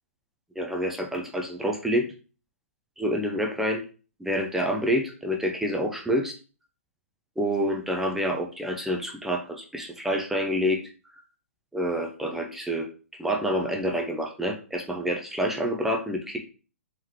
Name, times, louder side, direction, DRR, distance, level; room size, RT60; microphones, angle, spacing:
voice 1, 0.6-2.1 3.0-3.8 4.2-6.4 7.4-10.8 11.7-12.9 13.2-16.4, equal, 5° right, 1 dB, 0.5 m, -27 dB
3.6 x 3.1 x 3.1 m, 0.35 s
hypercardioid pair, 135°, 8 cm